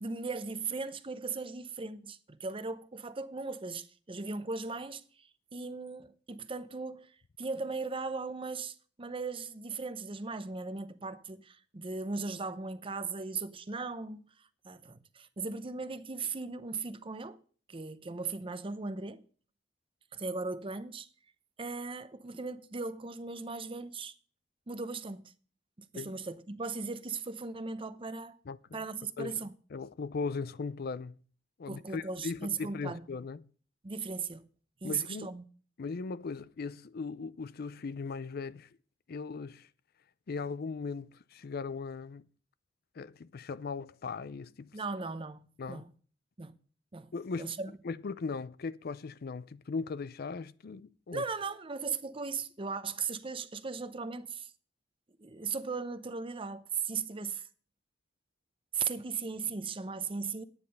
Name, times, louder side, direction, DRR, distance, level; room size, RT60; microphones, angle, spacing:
voice 1, 0.0-17.4 17.7-19.2 20.1-21.1 21.6-24.2 24.7-25.3 25.8-28.4 28.7-29.5 31.7-33.0 33.8-34.5 34.8-35.4 44.7-45.9 46.4-46.5 46.9-47.1 47.4-47.7 51.1-54.5 55.2-57.5 58.7-60.4, right 4 dB, 30° right, 0.7 m, -38 dB
voice 2, 28.5-28.8 29.2-29.3 29.7-31.2 31.6-33.4 34.8-35.3 35.8-38.7 39.1-39.7 40.3-42.3 43.0-44.8 45.6-45.8 47.1-47.5 47.8-51.2, left 4 dB, 55° left, 0.5 m, -38 dB
10.5 x 9.7 x 5.4 m
head